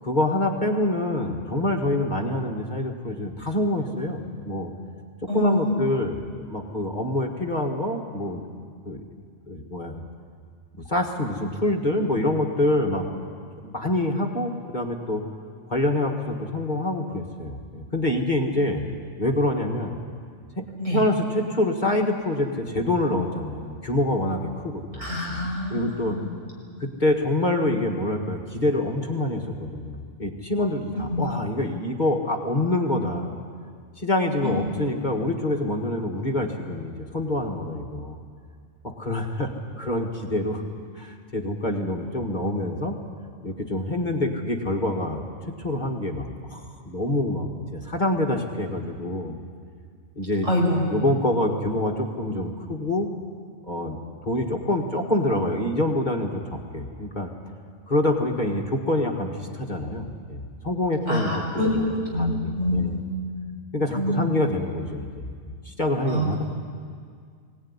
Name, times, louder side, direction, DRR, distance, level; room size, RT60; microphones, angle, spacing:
voice 1, 0.0-4.7 5.2-6.2 6.4-8.4 8.9-9.0 9.5-10.0 10.7-13.2 13.6-15.2 15.7-18.8 19.2-20.0 20.6-20.7 20.9-25.4 25.7-26.1 26.8-33.3 34.0-38.2 38.8-39.5 39.8-40.6 41.0-43.0 43.4-45.2 45.6-49.4 50.2-50.5 50.9-53.1 53.6-57.3 57.9-61.8 62.2-63.0 63.7-65.3 65.7-66.4, left 1 dB, 35° left, 2 dB, 1.8 m, -26 dB
voice 2, 5.3-5.7 20.8-21.0 25.0-26.3 31.1-31.2 34.4-34.5 50.4-50.8 61.1-63.0 63.9-64.2 66.0-66.3, left 1 dB, 70° right, -2 dB, 6.2 m, -25 dB
21.5 x 18.0 x 9.8 m, 2.1 s
omnidirectional pair, 1.4 m